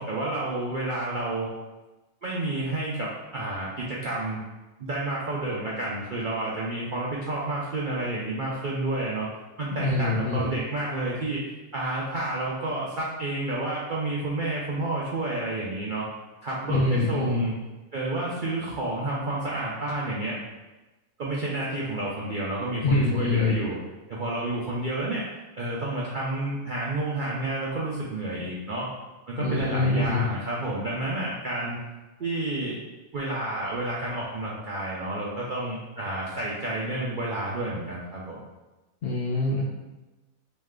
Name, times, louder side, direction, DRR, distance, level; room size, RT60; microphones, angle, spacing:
voice 1, 0.0-1.5 2.2-4.4 4.8-9.3 9.6-11.4 11.7-16.1 16.4-17.5 17.9-20.4 21.2-23.8 24.1-25.3 25.6-28.9 29.3-31.8 32.2-32.8 33.1-38.4, right 2 dB, 60° right, -5 dB, 0.5 m, -30 dB
voice 2, 9.7-10.6 16.7-17.4 22.8-23.6 29.4-30.2 39.0-39.6, left 3 dB, 55° left, -4 dB, 0.7 m, -24 dB
3.2 x 3.1 x 3.6 m, 1.1 s
omnidirectional pair, 1.5 m